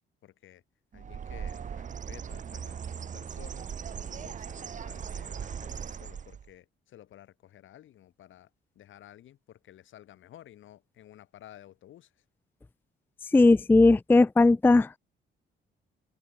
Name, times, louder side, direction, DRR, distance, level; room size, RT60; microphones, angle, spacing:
voice 1, 0.2-0.6 0.9-12.2, left 12 dB, 75° left, 6.5 m, -53 dB
Bird, 0.9-6.5, right 7 dB, 40° right, 0.8 m, -39 dB
voice 2, 13.3-15.0, left 3 dB, 10° left, 0.4 m, -19 dB
cardioid pair, 90°, 20 cm